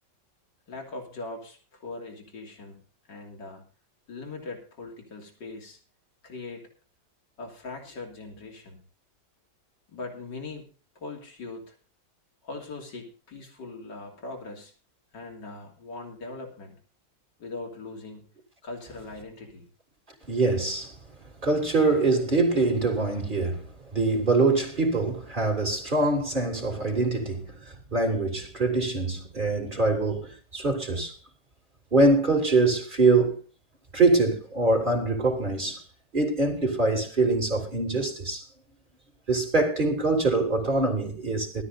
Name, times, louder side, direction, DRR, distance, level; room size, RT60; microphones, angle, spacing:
voice 1, 0.7-2.8 3.1-3.6 4.1-5.8 6.2-6.7 7.4-8.8 9.9-10.6 11.0-11.8 12.4-14.7 15.1-16.7 17.4-18.3 18.6-19.7, left 3 dB, 75° left, 3.8 m, -40 dB
voice 2, 20.3-20.9 21.4-23.7 23.9-31.2 31.9-33.4 33.9-35.8 36.1-38.4 39.3-41.6, right 3 dB, 25° right, 3.5 m, -24 dB
20.5 x 13.0 x 2.6 m
omnidirectional pair, 1.9 m